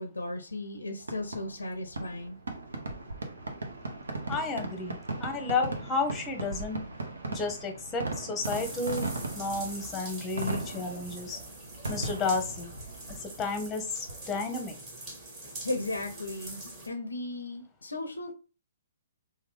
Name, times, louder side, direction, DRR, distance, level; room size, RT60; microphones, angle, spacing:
voice 1, 0.0-2.4 15.6-18.3, left 2 dB, 90° left, 0.5 m, -36 dB
Fireworks, 1.0-14.6, right 2 dB, 80° right, 0.7 m, -38 dB
voice 2, 4.3-6.8 7.3-9.1 9.3-11.4 11.9-12.7 13.2-14.7, left 3 dB, 15° left, 0.8 m, -32 dB
sound 1, 8.4-16.9, right 2 dB, 25° right, 1.4 m, -44 dB
3.3 x 2.2 x 3.2 m
figure-of-eight pair, 125°, 0 cm